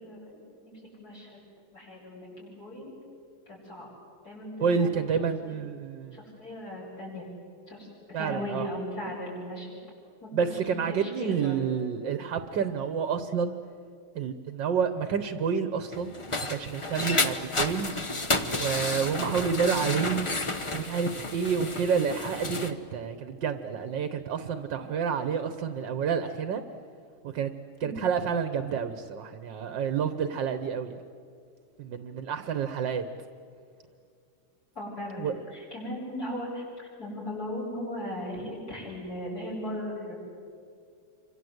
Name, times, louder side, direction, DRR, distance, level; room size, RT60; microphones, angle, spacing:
voice 1, 0.0-1.4 1.7-2.9 3.5-3.9 4.2-5.1 5.4-5.6 6.1-7.3 7.7-7.9 8.2-9.7 10.2-11.6 27.8-28.0 34.8-40.2, left 1 dB, 45° left, -3 dB, 8.7 m, -37 dB
voice 2, 4.6-6.2 8.1-8.7 10.3-13.6 14.2-16.1 16.5-18.0 18.6-20.3 20.7-26.6 27.3-27.5 27.8-31.0 31.8-33.0 35.2-35.3, right 6 dB, 60° right, 10 dB, 1.7 m, -29 dB
sound 1, 15.9-22.7, left 2 dB, 25° left, 0.6 m, -31 dB
27.5 x 25.5 x 8.0 m, 2.3 s
omnidirectional pair, 2.3 m